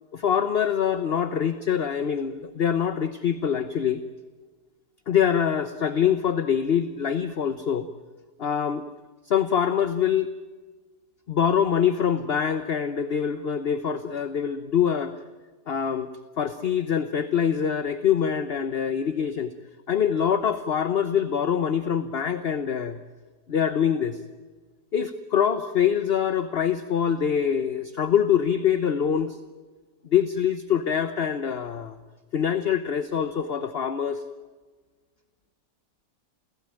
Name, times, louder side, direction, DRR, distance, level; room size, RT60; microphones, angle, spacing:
voice 1, 0.1-4.0 5.1-7.9 8.4-8.8 9.3-10.3 11.3-15.1 15.7-16.1 16.4-19.5 19.9-23.0 23.5-24.2 24.9-29.4 30.1-32.0 32.3-34.2, left 8 dB, 45° left, 11 dB, 0.9 m, -24 dB
29.0 x 16.5 x 9.0 m, 1.3 s
omnidirectional pair, 1.8 m